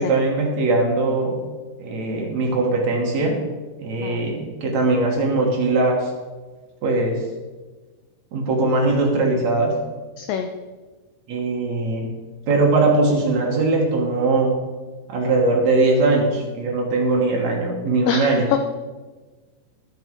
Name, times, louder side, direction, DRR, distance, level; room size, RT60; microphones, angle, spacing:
voice 1, 0.0-1.4 1.8-3.4 3.8-6.1 6.8-7.2 8.3-9.8 11.3-12.1 12.5-14.6 15.1-18.5, right 2 dB, 60° right, 0 dB, 2.0 m, -20 dB
voice 2, 10.2-10.5 18.1-18.6, left 9 dB, 90° left, 6 dB, 2.0 m, -24 dB
12.0 x 8.3 x 4.6 m, 1.3 s
omnidirectional pair, 4.8 m